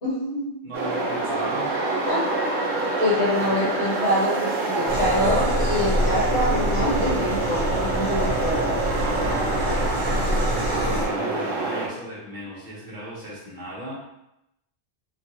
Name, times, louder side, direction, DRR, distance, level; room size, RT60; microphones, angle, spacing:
voice 1, 0.0-0.5 2.1-2.2 3.0-8.8, left 1 dB, 60° left, -7 dB, 1.5 m, -25 dB
voice 2, 0.6-1.7 3.4-3.8 4.9-5.4 8.9-13.9, equal, 40° right, -6 dB, 1.1 m, -38 dB
sound 1, 0.7-11.9, right 3 dB, 85° right, 1.0 m, -26 dB
sound 2, 4.9-11.1, equal, 70° right, 1.2 m, -26 dB
3.2 x 2.5 x 2.8 m, 0.84 s
omnidirectional pair, 1.3 m